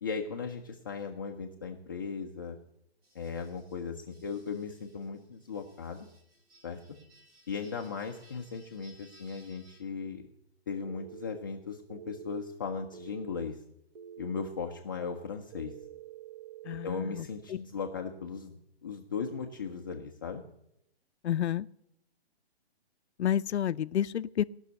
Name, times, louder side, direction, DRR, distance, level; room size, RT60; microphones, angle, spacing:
voice 1, 0.0-2.6 3.1-6.1 6.6-6.8 7.5-10.2 10.7-13.6 14.2-15.7 16.8-20.4, left 5 dB, 20° left, 1 dB, 0.5 m, -37 dB
sound 1, 3.0-9.8, right 1 dB, 65° right, 5.2 m, -61 dB
sound 2, 10.9-11.4 11.9-12.4 12.9-13.4 14.0-14.5 15.5-17.2, right 10 dB, 40° right, 0.8 m, -47 dB
voice 2, 16.7-17.2 21.2-21.7 23.2-24.4, left 10 dB, 75° left, 16 dB, 0.5 m, -30 dB
18.5 x 6.2 x 6.7 m, 0.79 s
hypercardioid pair, 155°, 33 cm